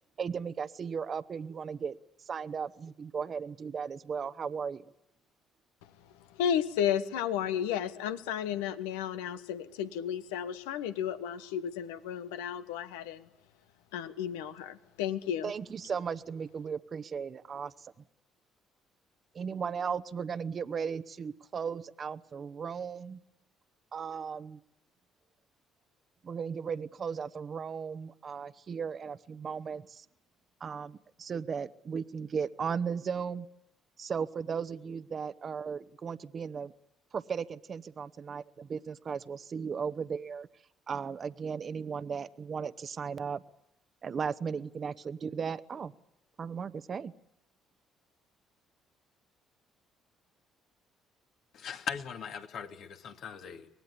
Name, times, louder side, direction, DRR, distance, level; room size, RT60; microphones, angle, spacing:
voice 1, 0.2-2.0 2.2-4.9 15.4-17.9 19.3-23.2 23.9-24.6 26.2-30.1 30.6-33.5 34.0-36.7 37.1-40.5 40.9-43.4 44.0-45.9 46.4-47.1, right 6 dB, 45° right, 1.0 m, -36 dB
voice 2, 6.3-13.3 13.9-15.5, left 9 dB, 85° left, 1.3 m, -33 dB
voice 3, 51.5-53.7, left 7 dB, 65° left, 2.4 m, -39 dB
24.0 x 19.5 x 9.9 m
hypercardioid pair, 55°, 0 cm